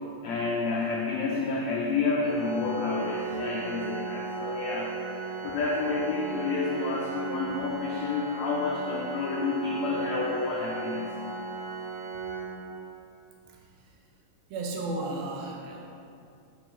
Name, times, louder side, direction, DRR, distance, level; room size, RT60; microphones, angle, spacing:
voice 1, 0.2-5.0 5.4-11.1, left 4 dB, 90° left, -3 dB, 1.5 m, -29 dB
Organ, 2.2-13.1, right 4 dB, 50° right, 2.5 m, -36 dB
voice 2, 14.5-15.9, right 2 dB, 85° right, 0 dB, 2.8 m, -34 dB
8.6 x 6.1 x 4.3 m, 2.5 s
omnidirectional pair, 4.1 m